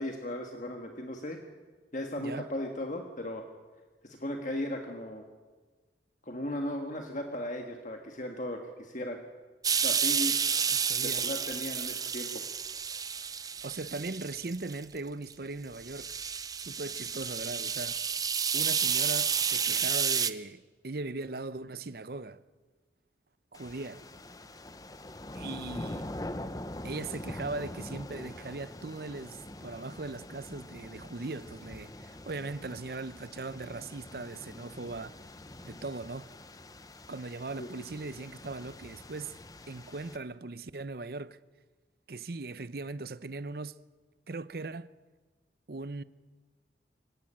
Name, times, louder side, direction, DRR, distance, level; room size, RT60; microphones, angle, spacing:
voice 1, 0.0-1.4 1.9-3.5 4.0-5.3 6.2-9.2 9.8-10.3 11.0-12.4 37.6-37.7, left 1 dB, 45° left, 1.6 m, -36 dB
sound 1, 9.6-14.8 15.3-15.4 15.8-20.3, right 7 dB, 20° right, 0.7 m, -30 dB
voice 2, 10.7-11.3 13.6-16.2 16.6-18.0 18.5-22.4 23.5-24.1 25.3-26.1 26.8-35.2 35.6-36.3 37.1-39.4 39.7-41.4 42.1-43.8 44.3-44.9 45.7-46.0, right 3 dB, 55° right, 0.7 m, -39 dB
sound 2, 23.5-40.2, left 1 dB, 20° left, 0.9 m, -44 dB
26.0 x 16.0 x 8.9 m
head